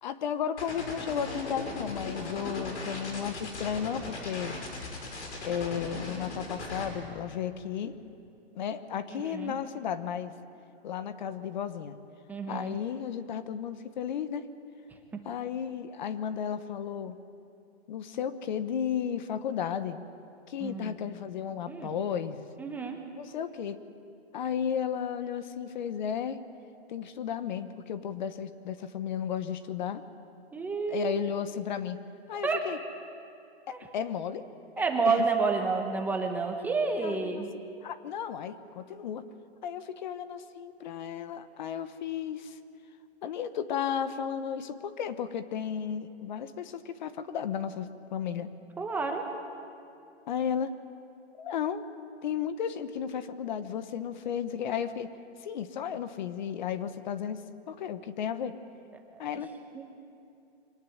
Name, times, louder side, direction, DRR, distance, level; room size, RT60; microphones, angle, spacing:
voice 1, 0.0-4.6 5.4-8.0 8.5-10.3 10.8-12.0 12.5-14.5 15.2-17.2 17.9-20.0 20.5-22.5 23.1-23.8 24.3-26.4 26.9-30.0 30.9-32.0 32.3-32.8 33.7-34.5 34.8-35.3 35.9-36.0 36.9-37.4 37.8-39.2 39.6-42.6 43.2-48.5 50.3-50.7 51.4-51.8 52.2-55.1 55.4-57.4 57.7-58.5 59.2-59.5, left 8 dB, 45° left, 12 dB, 1.1 m, -34 dB
sound 1, 0.6-6.9, left 2 dB, 90° left, 6.0 m, -38 dB
voice 2, 9.1-9.6 12.3-12.8 15.1-15.2 20.6-20.9 21.7-21.9 22.6-23.0 30.5-31.1 32.3-32.6 33.7-33.8 34.8-37.5 48.8-49.3 59.8-59.9, right 4 dB, 5° right, 2 dB, 0.9 m, -30 dB
24.0 x 18.5 x 9.3 m, 2.6 s
hypercardioid pair, 160°, 33 cm